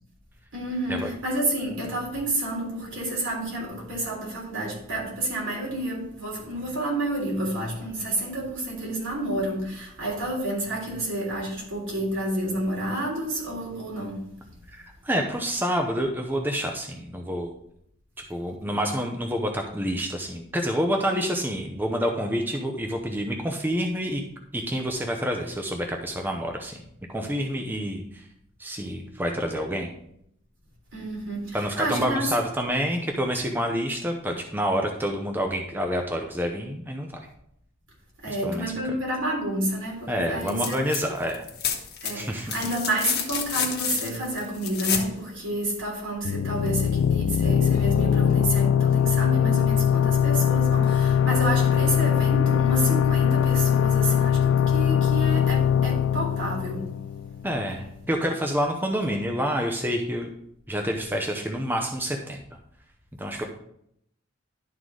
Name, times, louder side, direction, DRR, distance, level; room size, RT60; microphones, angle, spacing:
voice 1, 0.5-14.3 30.9-32.3 38.2-40.8 42.0-56.9, right 1 dB, 65° right, 3.5 m, -30 dB
voice 2, 14.7-17.5 18.3-24.2 24.5-26.8 27.1-28.3 28.6-29.9 31.5-37.1 38.3-38.7 40.1-41.4 42.1-42.6 57.4-60.3 60.7-62.6 63.2-63.4, equal, 10° right, 0.7 m, -28 dB
sound 1, 40.4-41.0 41.3-45.1 46.8-46.9, left 7 dB, 55° left, 1.2 m, -29 dB
sound 2, 46.2-57.6, left 8 dB, 80° left, 0.3 m, -21 dB
11.5 x 3.9 x 4.8 m
head